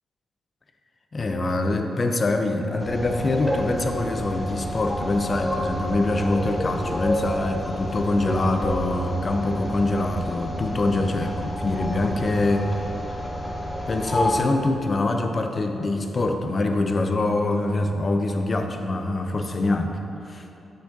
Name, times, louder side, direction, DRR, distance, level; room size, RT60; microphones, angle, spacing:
voice 1, 1.1-12.7 13.9-19.9 20.3-20.5, left 2 dB, 45° left, 5 dB, 0.6 m, -24 dB
sound 1, 2.8-14.4, equal, 15° left, 1.3 m, -29 dB
7.9 x 6.4 x 2.7 m, 2.8 s
supercardioid pair, 45°, 0 cm